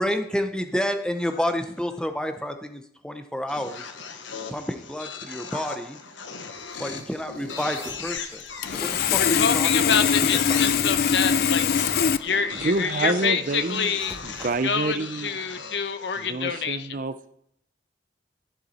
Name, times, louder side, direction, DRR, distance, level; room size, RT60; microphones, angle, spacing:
voice 1, 0.0-3.8 4.5-6.0 6.8-8.4 8.7-9.7 10.0-10.1 10.5-10.6, equal, 5° left, 7 dB, 0.8 m, -29 dB
sound 1, 1.2-1.9 3.5-16.4, left 5 dB, 85° left, 1.2 m, -38 dB
sound 2, 6.6-14.6, right 1 dB, 15° right, 2.2 m, -50 dB
Sawing, 8.2-8.3 8.6-12.2, left 7 dB, 55° left, 0.4 m, -22 dB
voice 2, 9.1-11.6 12.2-14.2 14.6-16.9, left 6 dB, 70° left, 9 dB, 0.9 m, -26 dB
voice 3, 12.5-15.4 16.2-17.4, right 2 dB, 45° right, 13 dB, 0.6 m, -28 dB
13.5 x 8.1 x 4.3 m, 0.70 s
head